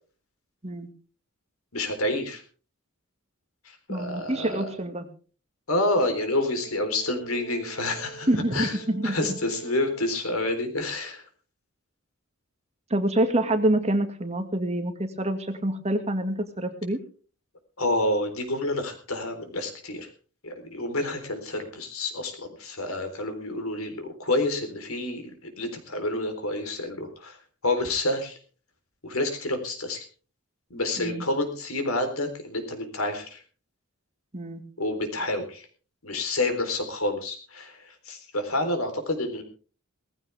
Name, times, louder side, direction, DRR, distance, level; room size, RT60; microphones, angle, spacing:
voice 1, 1.7-2.4 3.6-4.7 5.7-8.8 9.0-11.2 17.8-20.1 20.4-27.4 27.6-28.4 29.0-30.0 30.7-33.4 34.8-35.7 36.0-39.4, left 2 dB, 90° left, 7 dB, 3.9 m, -29 dB
voice 2, 3.9-5.1 8.3-9.2 12.9-17.0 31.0-31.2 34.3-34.6, right 1 dB, 30° right, 7 dB, 1.9 m, -26 dB
Brass instrument, 6.1-10.3, right 2 dB, 35° left, 5.0 m, -45 dB
18.5 x 15.0 x 3.5 m, 0.39 s
head